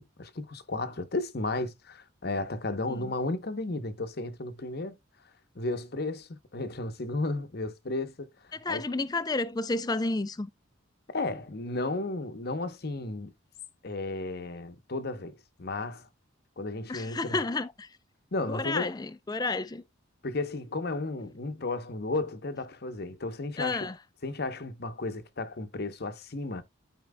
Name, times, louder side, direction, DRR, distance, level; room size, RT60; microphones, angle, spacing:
voice 1, 0.2-4.9 5.5-8.9 11.1-13.3 13.8-16.1 16.6-17.5 18.3-18.9 20.2-23.9 24.2-26.6, left 2 dB, 50° left, 0.9 m, -34 dB
voice 2, 8.6-10.5 16.9-17.9 18.5-19.8 23.6-23.9, left 3 dB, 20° left, 0.4 m, -31 dB
13.0 x 4.5 x 2.2 m
head